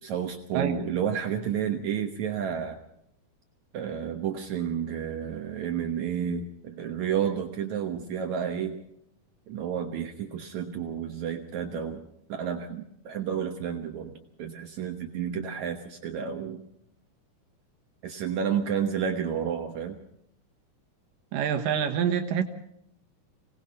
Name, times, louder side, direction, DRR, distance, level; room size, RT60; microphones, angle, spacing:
voice 1, 0.0-2.8 3.7-8.8 9.5-16.6 18.0-20.0, right 8 dB, 65° right, 5 dB, 2.4 m, -31 dB
voice 2, 21.3-22.4, right 8 dB, 90° right, 5 dB, 2.9 m, -26 dB
26.0 x 18.5 x 5.4 m, 0.74 s
omnidirectional pair, 3.7 m